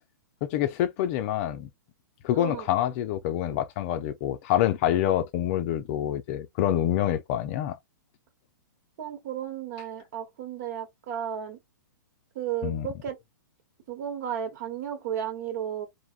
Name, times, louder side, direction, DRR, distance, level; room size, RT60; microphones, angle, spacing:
voice 1, 0.4-1.7 2.2-7.8 12.6-12.9, left 11 dB, 40° left, 0.5 m, -26 dB
voice 2, 2.3-2.7 9.0-11.6 12.3-13.2 13.9-15.9, right 9 dB, 55° right, 1.2 m, -33 dB
3.3 x 2.2 x 2.4 m
hypercardioid pair, 130°, 11 cm